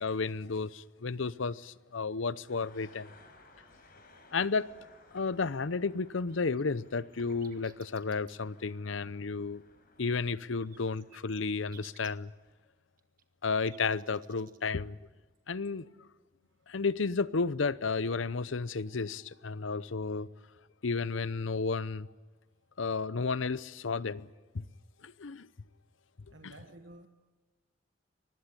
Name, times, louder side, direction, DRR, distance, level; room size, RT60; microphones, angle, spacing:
voice 1, 0.0-3.1 4.3-4.7 5.1-9.6 10.0-12.3 13.4-15.0 15.5-15.9 16.7-20.3 20.8-22.1 22.8-24.3 24.5-24.6 25.0-25.5 26.4-26.5, left 4 dB, 75° left, 0.7 m, -32 dB
sound 1, 2.5-12.5, left 2 dB, 45° left, 5.1 m, -60 dB
sound 2, 5.8-8.4 10.4-12.1 13.0-14.6, right 9 dB, 45° right, 1.5 m, -59 dB
voice 2, 26.3-27.1, right 2 dB, 65° right, 1.4 m, -52 dB
24.0 x 20.0 x 9.9 m
head